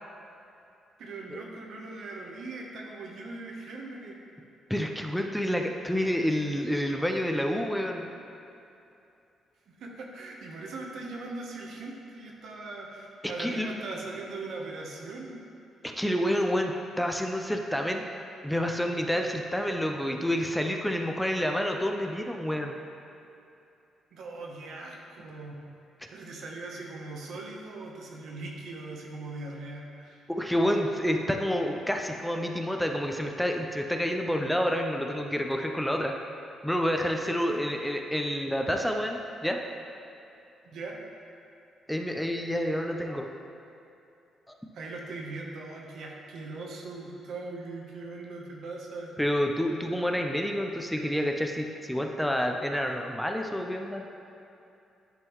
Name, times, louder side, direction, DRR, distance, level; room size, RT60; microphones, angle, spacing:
voice 1, 1.0-4.2 9.7-15.4 24.1-25.5 26.1-30.3 40.6-41.0 44.7-49.1, right 3 dB, 70° right, -1 dB, 0.9 m, -40 dB
voice 2, 4.7-8.1 13.2-13.7 15.8-18.1 18.4-22.8 30.3-36.1 36.6-39.6 41.9-43.3 44.5-44.6 49.2-54.0, equal, 5° left, 2 dB, 0.5 m, -28 dB
10.5 x 3.8 x 3.0 m, 2.7 s
cardioid pair, 90°, 0 cm